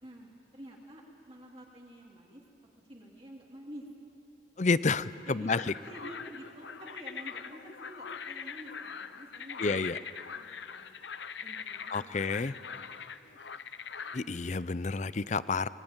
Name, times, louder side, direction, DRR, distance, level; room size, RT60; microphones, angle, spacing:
voice 1, 0.0-2.4 2.9-3.9 5.3-5.5 5.8-9.9 10.3-10.9 11.4-12.5 12.7-12.9, equal, 30° right, -2 dB, 2.8 m, -49 dB
voice 2, 4.6-5.7 9.6-10.0 11.9-12.5 14.1-15.7, left 4 dB, 40° left, 16 dB, 0.6 m, -30 dB
sound 1, 5.5-14.2, left 6 dB, 75° left, 0.9 m, -42 dB
24.5 x 21.5 x 9.0 m, 3.0 s
head